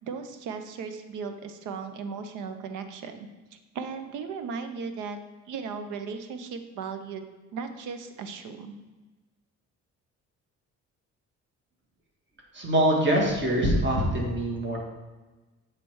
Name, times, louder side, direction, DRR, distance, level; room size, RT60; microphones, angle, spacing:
voice 1, 0.0-5.2 5.5-7.2 7.5-8.8, right 5 dB, 90° right, 8 dB, 0.7 m, -37 dB
voice 2, 12.5-14.8, right 1 dB, 40° right, -1 dB, 1.5 m, -24 dB
8.3 x 3.3 x 4.7 m, 1.2 s
cardioid pair, 90°, 30 cm